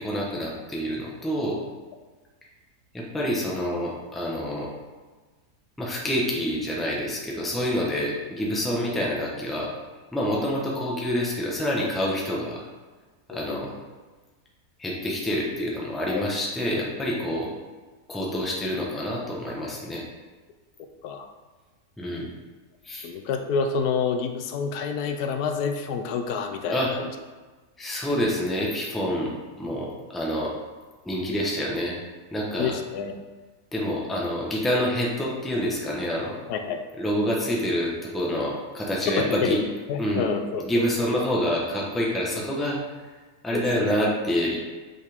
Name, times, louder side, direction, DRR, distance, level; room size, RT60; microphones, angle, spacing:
voice 1, 0.0-1.6 2.9-4.7 5.8-9.7 10.1-12.6 13.3-13.7 14.8-17.5 18.1-20.0 22.0-22.3 22.8-23.1 26.7-26.9 27.8-29.3 29.6-30.5 31.0-32.0 32.3-32.7 33.7-36.4 37.0-39.6 40.0-40.3 40.6-42.8 43.4-44.6, equal, ahead, -3 dB, 0.8 m, -27 dB
voice 2, 13.3-13.7 16.1-16.3 21.0-21.3 23.0-27.1 32.6-33.1 36.5-36.8 39.1-39.6 39.9-40.6 41.0-41.1 43.5-43.9, left 6 dB, 85° left, 6 dB, 1.2 m, -28 dB
6.1 x 5.5 x 3.5 m, 1.3 s
omnidirectional pair, 1.6 m